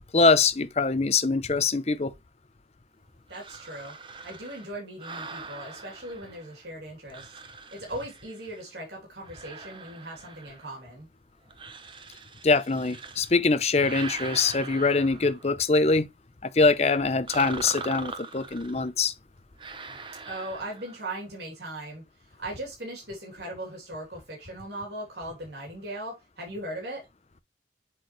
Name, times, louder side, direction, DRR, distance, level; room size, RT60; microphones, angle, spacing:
voice 1, 0.1-2.1 12.4-16.1 16.4-19.1, left 4 dB, 35° left, 0.6 m, -23 dB
sound 1, 3.3-6.7 7.1-8.7 9.2-10.9 11.5-13.3 13.7-15.6 17.3-18.9 19.6-21.1, right 4 dB, 30° right, 0.8 m, -42 dB
voice 2, 3.3-3.9 4.2-7.3 7.7-11.1 20.3-22.0 22.4-27.1, right 1 dB, 75° right, 3.0 m, -38 dB
7.9 x 4.5 x 3.1 m
head